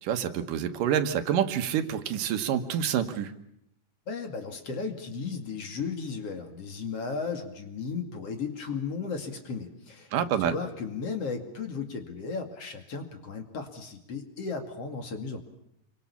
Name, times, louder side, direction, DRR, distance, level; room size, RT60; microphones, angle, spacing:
voice 1, 0.0-3.3 10.1-10.5, right 9 dB, 85° right, 9 dB, 2.9 m, -27 dB
voice 2, 4.1-10.1 10.4-15.4, left 5 dB, 50° left, 5 dB, 3.2 m, -35 dB
27.5 x 24.5 x 7.1 m, 0.76 s
omnidirectional pair, 3.7 m